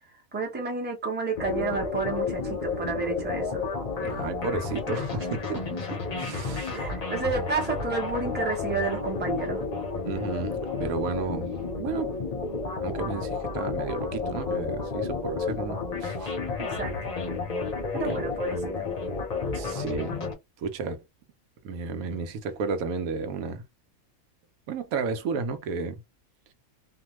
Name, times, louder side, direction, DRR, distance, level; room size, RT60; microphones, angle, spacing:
voice 1, 0.3-3.6 6.7-9.6 16.6-16.9 17.9-18.9, right 4 dB, 10° right, 0.6 m, -30 dB
sound 1, 1.3-20.3, left 4 dB, 45° left, 0.5 m, -31 dB
voice 2, 4.0-5.7 6.1-6.7 10.0-11.5 11.8-12.1 12.7-16.3 18.0-18.3 19.5-20.2 20.6-21.0 21.6-23.6 24.7-26.0, right 4 dB, 85° right, 1.1 m, -32 dB
2.6 x 2.2 x 3.0 m
omnidirectional pair, 1.5 m